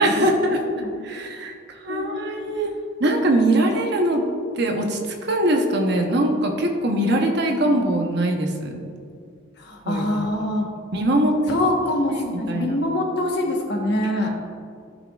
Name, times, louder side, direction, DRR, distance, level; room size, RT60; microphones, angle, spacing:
voice 1, 0.0-0.6 1.0-1.5 1.8-2.7 3.0-4.2 4.6-8.8 9.8-10.0 10.9-11.3 12.5-12.8, right 1 dB, 55° right, 3 dB, 0.9 m, -21 dB
voice 2, 9.6-10.7 11.5-14.3, left 1 dB, 55° left, 0 dB, 1.2 m, -24 dB
12.5 x 6.1 x 2.4 m, 2.3 s
head